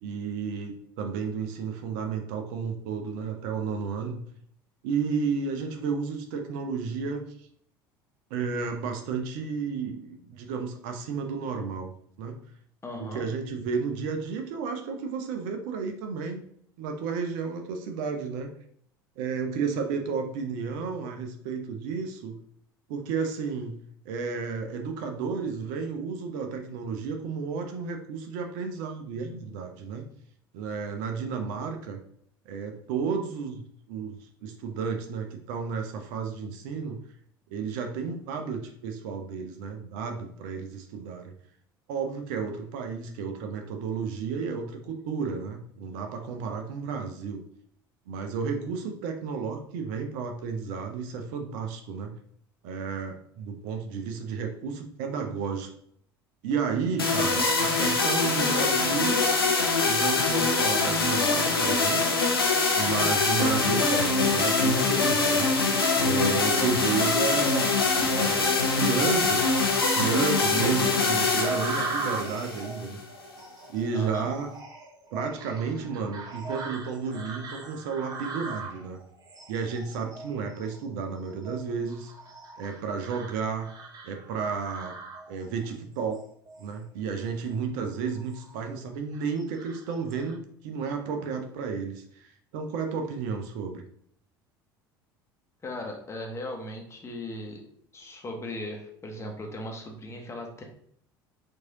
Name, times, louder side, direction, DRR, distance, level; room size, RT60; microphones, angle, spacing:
voice 1, 0.0-4.2 4.8-7.3 8.3-11.9 12.2-12.4 13.0-16.4 16.8-18.5 19.2-22.4 22.9-23.7 24.1-30.1 30.5-32.0 32.5-33.6 33.9-37.0 37.5-41.3 41.9-47.4 48.1-52.1 52.6-55.7 56.4-59.2 59.8-62.1 62.7-65.5 66.0-67.7 68.1-69.5 69.9-73.0 73.7-74.5 75.1-79.0 79.5-82.1 82.6-83.7 84.0-85.0 85.3-86.2 86.6-93.8, right 5 dB, 60° right, 5 dB, 0.6 m, -32 dB
voice 2, 12.8-13.3 73.9-74.3 95.6-97.6 97.9-100.6, left 1 dB, 20° left, 2 dB, 0.9 m, -37 dB
sound 1, 57.0-73.0, left 3 dB, 85° left, 0.6 m, -24 dB
sound 2, 71.3-85.7 86.1-86.7 87.3-87.5 88.0-88.7 89.1-90.3, right 3 dB, 35° right, 0.8 m, -39 dB
4.6 x 2.7 x 2.9 m, 0.66 s
figure-of-eight pair, 65°, 12 cm